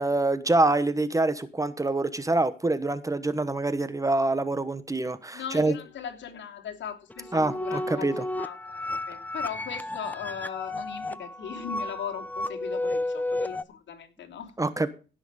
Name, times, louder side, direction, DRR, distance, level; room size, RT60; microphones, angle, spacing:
voice 1, 0.0-5.7 7.3-8.2 14.6-14.9, right 2 dB, 15° right, 1.1 m, -25 dB
voice 2, 5.3-14.6, left 8 dB, 70° left, 3.0 m, -39 dB
sound 1, 7.1-13.6, left 1 dB, 10° left, 0.8 m, -33 dB
16.5 x 6.3 x 4.9 m
cardioid pair, 90°, 20 cm